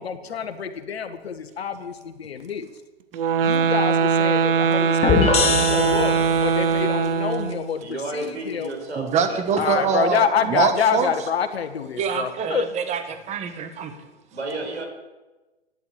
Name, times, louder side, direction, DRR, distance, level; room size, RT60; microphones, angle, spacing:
voice 1, 0.0-2.7 3.4-8.7 9.6-12.7, left 7 dB, 65° left, 7 dB, 1.7 m, -27 dB
sound 1, 3.1-7.7, right 6 dB, 55° right, 1.0 m, -21 dB
sound 2, 5.0-6.7, left 6 dB, 20° left, 1.2 m, -22 dB
voice 2, 7.8-10.1 14.3-14.9, right 2 dB, 85° right, 2 dB, 5.1 m, -33 dB
voice 3, 9.0-11.1 12.0-13.0 13.3-13.9, right 6 dB, 20° right, 7 dB, 1.4 m, -24 dB
12.5 x 10.5 x 8.1 m, 1.2 s
figure-of-eight pair, 115°, 33 cm